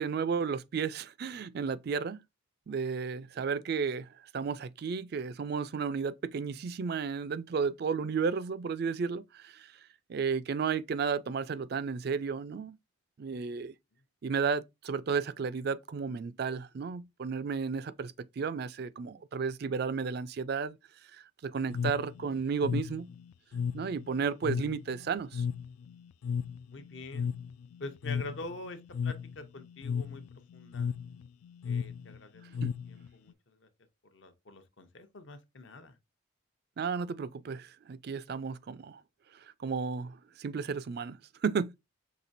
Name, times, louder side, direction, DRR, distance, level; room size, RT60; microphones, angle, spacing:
voice 1, 0.0-2.2 2.7-9.7 10.1-12.8 13.2-13.7 14.2-20.8 21.1-23.1 23.7-25.4 32.6-32.7 36.8-39.0 39.3-41.8, right 5 dB, 50° right, 0.3 m, -33 dB
sound 1, 21.7-33.3, left 6 dB, 85° left, 0.3 m, -35 dB
voice 2, 26.7-27.3 27.8-30.2 30.5-30.9 31.6-32.4 32.9-33.7 34.1-35.9, left 2 dB, 60° left, 0.8 m, -45 dB
5.9 x 3.2 x 2.6 m
head